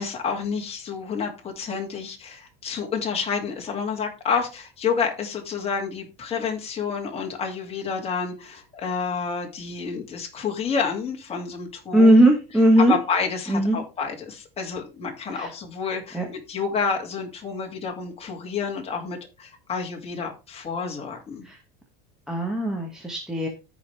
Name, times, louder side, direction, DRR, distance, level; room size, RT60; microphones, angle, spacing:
voice 1, 0.0-12.3 12.8-21.5, left 5 dB, 20° left, 1 dB, 2.2 m, -29 dB
voice 2, 11.9-13.0 13.5-13.8 15.3-15.5 16.1-16.2 21.4-21.6 22.3-23.5, right 1 dB, ahead, 0 dB, 1.1 m, -18 dB
14.0 x 5.0 x 3.3 m, 0.28 s
cardioid pair, 155°, 29 cm